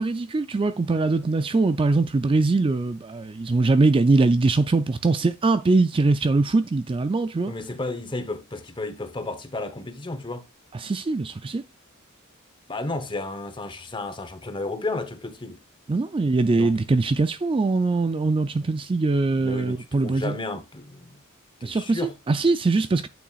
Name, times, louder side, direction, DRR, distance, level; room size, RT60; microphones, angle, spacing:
voice 1, 0.0-7.5 10.7-11.6 15.9-20.4 21.6-23.1, right 3 dB, 25° right, 0.4 m, -22 dB
voice 2, 7.5-10.4 12.7-15.6 16.5-16.7 19.3-21.2 21.6-22.1, left 2 dB, 20° left, 1.0 m, -33 dB
8.7 x 7.0 x 2.4 m
head